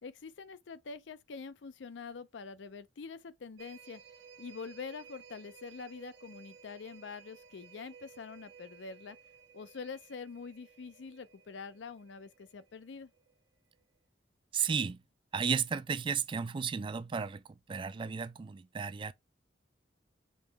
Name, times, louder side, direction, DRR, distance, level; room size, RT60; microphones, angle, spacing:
voice 1, 0.0-4.0 4.4-9.2 9.5-13.1, left 5 dB, 90° left, 0.5 m, -45 dB
sound 1, 3.6-13.3 13.7-13.8, right 7 dB, 85° right, 0.8 m, -56 dB
voice 2, 14.5-15.0 15.3-17.4 17.7-19.1, right 6 dB, 30° right, 0.3 m, -33 dB
5.3 x 3.0 x 3.3 m
head